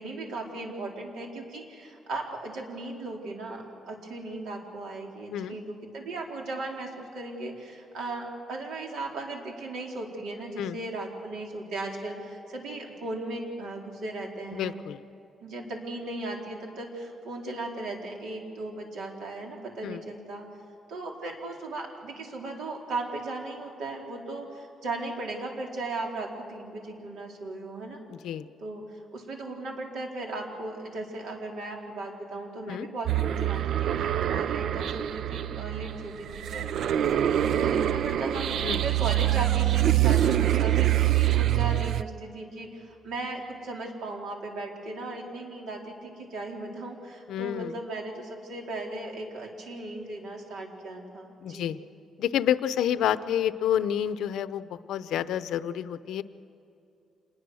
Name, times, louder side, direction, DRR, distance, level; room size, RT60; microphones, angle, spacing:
voice 1, 0.0-14.8 15.4-20.5 20.9-28.0 28.6-36.7 37.4-51.7, right 2 dB, 85° right, 0 dB, 4.0 m, -37 dB
voice 2, 14.5-15.0 19.8-20.0 28.2-28.5 32.7-32.9 38.6-38.8 47.3-47.7 51.4-51.8 52.2-56.2, left 10 dB, 85° left, 13 dB, 0.7 m, -29 dB
sound 1, 33.1-42.0, right 12 dB, 60° right, 0.5 m, -25 dB
26.5 x 21.0 x 6.4 m, 2.8 s
cardioid pair, 175°, 0 cm